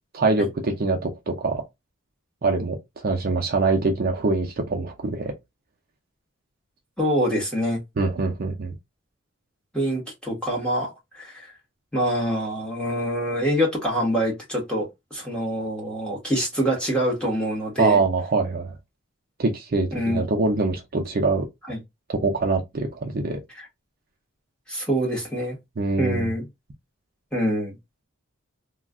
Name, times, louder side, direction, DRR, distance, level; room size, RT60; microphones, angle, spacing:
voice 1, 0.2-1.6 2.4-5.3 8.0-8.7 17.8-18.7 19.4-21.4 22.1-23.4 25.8-26.3, right 3 dB, 45° right, 0.5 m, -24 dB
voice 2, 7.0-7.8 9.7-11.5 11.9-18.0 19.9-20.2 21.7-21.8 23.5-23.7 24.7-25.6 26.0-26.5 27.3-27.8, equal, 5° left, 1.1 m, -25 dB
2.4 x 2.2 x 3.5 m
head